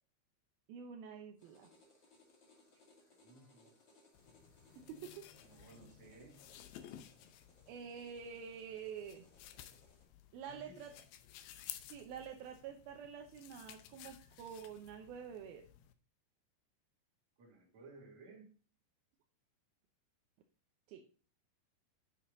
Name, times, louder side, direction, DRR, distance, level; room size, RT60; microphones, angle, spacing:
voice 1, 0.7-1.7 4.8-5.3 7.7-9.3 10.3-10.9 11.9-15.6 20.9-21.0, right 7 dB, 75° right, 3 dB, 2.2 m, -48 dB
sound 1, 1.4-10.0, left 2 dB, 40° left, 1.7 m, -67 dB
voice 2, 2.7-3.8 5.4-6.5 10.4-11.0 17.4-18.6, right 3 dB, 45° right, -1 dB, 3.1 m, -58 dB
sound 2, 4.1-15.9, left 11 dB, 85° left, 2.3 m, -55 dB
9.6 x 6.2 x 3.9 m, 0.38 s
omnidirectional pair, 5.3 m